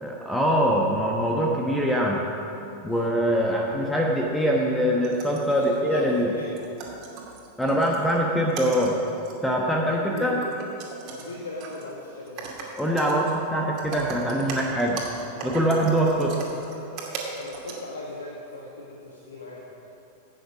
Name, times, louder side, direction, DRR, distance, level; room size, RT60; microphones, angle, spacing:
voice 1, 0.0-2.2 2.8-6.3 7.6-8.9 9.4-10.4 12.8-15.0 15.4-16.3, equal, 5° left, -2 dB, 1.2 m, -23 dB
voice 2, 3.0-3.8 5.6-6.6 9.9-10.5 11.1-12.5 16.0-16.9 17.3-19.7, left 2 dB, 70° left, -2 dB, 1.4 m, -38 dB
sound 1, 4.8-5.7 6.2-6.3 6.6-8.2 8.5-9.4 9.7-9.8 10.2-11.3 11.6-11.8 12.3-13.4 13.6-17.8, right 4 dB, 40° right, 2.3 m, -38 dB
16.0 x 9.0 x 5.1 m, 2.8 s
figure-of-eight pair, 90°, 0 cm